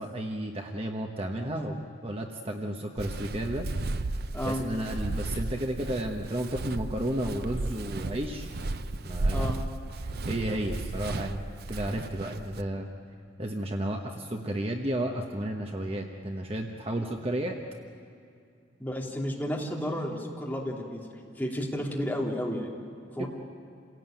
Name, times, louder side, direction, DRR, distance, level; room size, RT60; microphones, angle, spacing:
voice 1, 0.0-3.7 4.4-8.5 9.0-9.5 10.0-12.9 13.4-17.6 23.2-23.3, right 1 dB, 30° right, 2 dB, 1.2 m, -32 dB
Walk footsteps, 3.0-12.6, right 2 dB, 55° right, 0.6 m, -34 dB
voice 2, 18.8-21.0 21.3-22.7 23.1-23.3, equal, 10° left, -3 dB, 3.0 m, -32 dB
28.0 x 17.0 x 9.1 m, 2.4 s
head